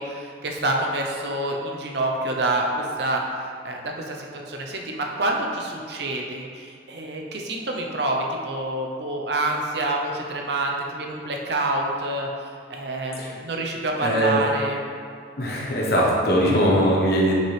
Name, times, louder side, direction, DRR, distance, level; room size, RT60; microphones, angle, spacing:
voice 1, 0.0-3.2 3.6-12.3 12.7-14.8, right 2 dB, 70° right, 1 dB, 0.7 m, -27 dB
voice 2, 14.0-14.5 15.4-17.3, equal, 55° left, -3 dB, 1.1 m, -21 dB
5.9 x 5.9 x 3.3 m, 2.3 s
head